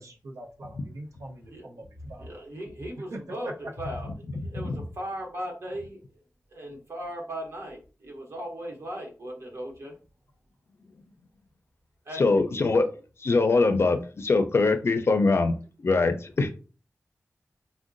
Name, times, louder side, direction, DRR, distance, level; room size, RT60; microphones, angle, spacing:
voice 1, 0.0-2.3, right 1 dB, 90° right, 0 dB, 0.7 m, -44 dB
voice 2, 1.5-4.1 4.4-6.0 6.5-10.0 12.0-12.4 13.5-13.6, equal, 60° right, 0 dB, 0.9 m, -38 dB
voice 3, 12.2-12.9 13.2-16.5, left 3 dB, 55° left, 7 dB, 0.4 m, -23 dB
3.6 x 2.1 x 2.5 m, 0.36 s
wide cardioid pair, 100°, 5 cm